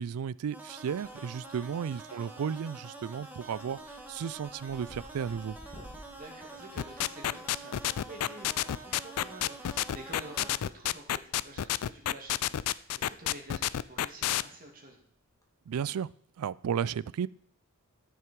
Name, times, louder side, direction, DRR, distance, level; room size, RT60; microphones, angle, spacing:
voice 1, 0.0-5.6 15.7-17.3, right 7 dB, 75° right, 22 dB, 0.3 m, -34 dB
sound 1, 0.5-10.6, right 2 dB, 10° right, 1.6 m, -47 dB
sound 2, 1.0-1.4 1.8-2.3 2.6-2.9 3.2-7.7 9.0-9.2 10.4-11.2 11.5-11.7 12.2-12.3 12.6-12.7 13.0-13.2 13.5-13.6 15.2-15.4, equal, 15° left, 1.7 m, -54 dB
voice 2, 6.1-15.0, right 1 dB, 40° right, 1 dB, 2.5 m, -49 dB
sound 3, 6.8-14.4, left 12 dB, 85° left, 0.4 m, -29 dB
13.5 x 6.6 x 4.6 m, 0.64 s
head